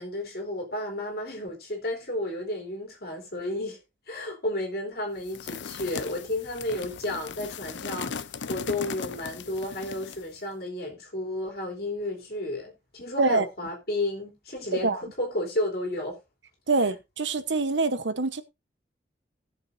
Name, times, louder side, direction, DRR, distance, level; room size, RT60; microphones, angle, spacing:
voice 1, 0.0-3.8 4.1-16.2, left 1 dB, 55° left, 3.2 m, -32 dB
sound 1, 5.2-10.3, left 6 dB, 80° left, 0.6 m, -38 dB
voice 2, 16.7-18.4, right 3 dB, 80° right, 1.0 m, -25 dB
19.0 x 6.8 x 2.6 m
head